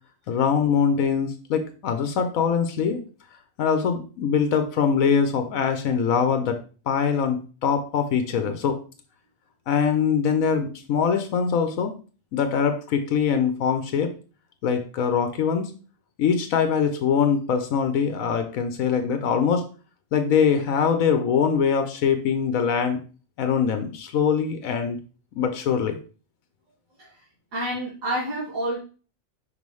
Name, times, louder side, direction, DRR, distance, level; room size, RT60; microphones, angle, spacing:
voice 1, 0.3-3.0 3.6-6.6 6.9-8.8 9.7-11.9 12.3-14.1 14.6-15.7 16.2-19.6 20.1-23.0 23.4-25.0 25.4-26.0, left 6 dB, 90° left, 7 dB, 1.2 m, -23 dB
voice 2, 27.5-28.8, right 1 dB, 85° right, -9 dB, 2.3 m, -29 dB
5.7 x 5.3 x 3.2 m, 0.37 s
omnidirectional pair, 1.4 m